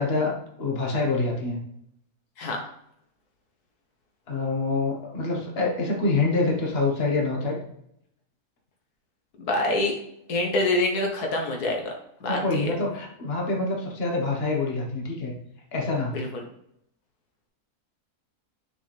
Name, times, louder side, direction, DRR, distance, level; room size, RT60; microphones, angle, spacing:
voice 1, 0.0-1.6 4.3-7.6 12.3-15.3 15.7-16.2, left 3 dB, 40° left, 0 dB, 1.6 m, -26 dB
voice 2, 9.4-10.0 10.3-11.9 12.2-12.7 16.1-16.4, left 2 dB, 90° left, 1 dB, 1.8 m, -26 dB
6.3 x 5.3 x 3.4 m, 0.75 s
omnidirectional pair, 1.6 m